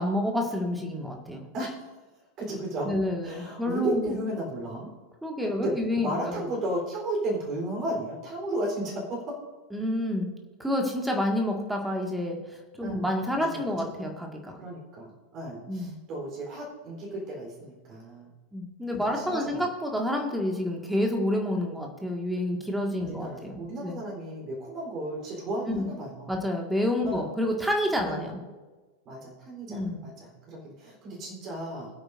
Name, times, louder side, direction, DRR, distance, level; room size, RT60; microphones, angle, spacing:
voice 1, 0.0-1.4 2.9-4.1 5.2-6.4 9.7-10.3 10.6-14.6 15.7-16.0 18.5-24.0 25.7-25.9 26.3-28.4 29.7-30.1, left 1 dB, 5° right, 2 dB, 1.9 m, -29 dB
voice 2, 2.4-2.9 3.2-4.9 5.6-9.4 12.8-13.1 13.4-13.6 14.5-18.3 19.1-19.7 23.0-26.4 27.0-27.3 28.0-28.4 29.1-31.9, right 1 dB, 35° right, -2 dB, 3.8 m, -34 dB
22.5 x 8.7 x 2.6 m, 1.3 s
figure-of-eight pair, 90°, 0 cm